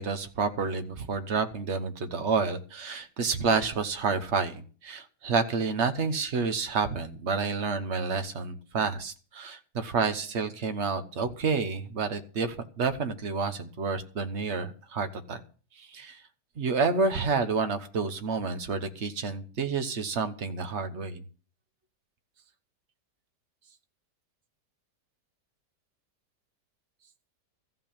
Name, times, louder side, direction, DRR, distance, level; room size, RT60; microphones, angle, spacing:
voice 1, 0.0-15.4 15.8-16.2 16.6-21.2, right 4 dB, 45° right, 9 dB, 1.3 m, -29 dB
14.5 x 5.7 x 8.7 m, 0.40 s
omnidirectional pair, 1.8 m